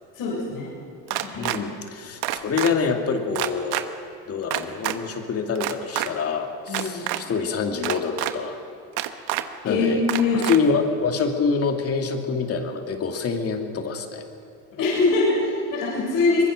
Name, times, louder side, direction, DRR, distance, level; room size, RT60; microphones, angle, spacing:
voice 1, 0.2-0.7 1.1-1.6 6.7-7.1 9.6-10.4 14.8-16.4, left 3 dB, 55° left, -4 dB, 7.0 m, -23 dB
sound 1, 1.1-1.6 2.2-2.7 3.3-3.8 4.5-5.0 5.6-6.1 6.7-7.2 7.8-8.3 9.0-9.4 10.1-10.6, right 16 dB, 70° right, 1.3 m, -26 dB
voice 2, 1.3-3.9 4.3-8.6 9.6-10.0 10.5-14.2, left 5 dB, 35° left, 5 dB, 2.5 m, -26 dB
23.5 x 21.0 x 6.5 m, 2.5 s
cardioid pair, 130°, 40 cm